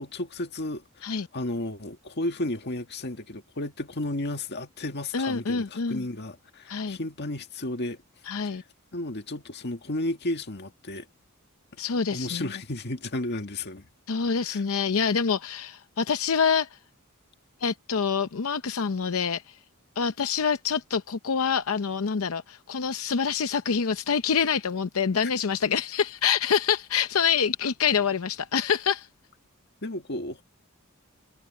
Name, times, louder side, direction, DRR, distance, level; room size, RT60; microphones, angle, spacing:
voice 1, 0.0-1.1 1.3-8.0 8.4-8.6 8.9-11.1 12.1-13.9 14.5-14.6 29.8-30.4, left 1 dB, 55° left, 1.9 m, -33 dB
voice 2, 5.1-6.0 6.7-7.0 8.3-8.6 11.8-12.5 14.1-16.8 17.6-19.6 20.0-29.1, left 6 dB, 85° left, 0.7 m, -26 dB
head